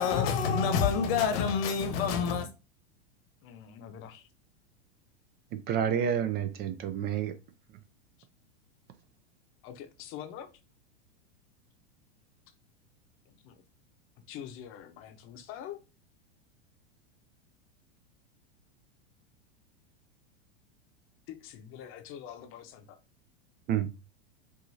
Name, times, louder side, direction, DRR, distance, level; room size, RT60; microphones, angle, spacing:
voice 1, 0.0-2.5, left 6 dB, 60° left, 1.1 m, -27 dB
voice 2, 3.4-4.3 9.6-10.5 13.3-13.6 14.3-15.8 21.3-23.0, left 9 dB, 40° left, 0.8 m, -45 dB
voice 3, 5.5-7.3 23.7-23.9, right 9 dB, 30° right, 0.4 m, -29 dB
4.7 x 2.6 x 2.7 m
hypercardioid pair, 120°, 33 cm